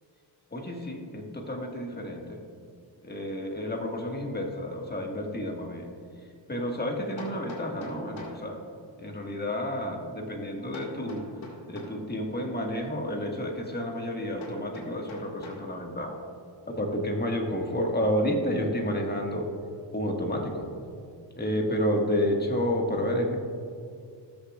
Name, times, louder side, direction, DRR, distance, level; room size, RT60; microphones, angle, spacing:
voice 1, 0.5-2.4 3.0-5.9 6.5-8.6 9.0-11.3 11.7-16.2 16.7-19.5 19.9-20.7 21.4-23.4, equal, 20° left, 1 dB, 1.7 m, -30 dB
Hammer, 7.2-8.5 10.7-12.0 14.4-15.7, left 1 dB, 80° left, 2.1 m, -43 dB
19.0 x 6.9 x 2.4 m, 2.3 s
cardioid pair, 70°, 46 cm